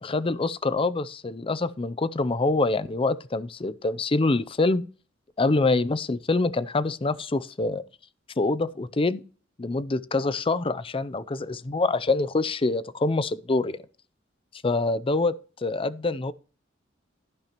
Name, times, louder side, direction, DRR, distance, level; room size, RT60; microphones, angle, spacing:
voice 1, 0.0-4.8 5.4-7.8 8.4-9.2 9.6-13.8 14.6-16.3, left 3 dB, 30° left, 0.5 m, -25 dB
12.0 x 11.0 x 3.0 m
head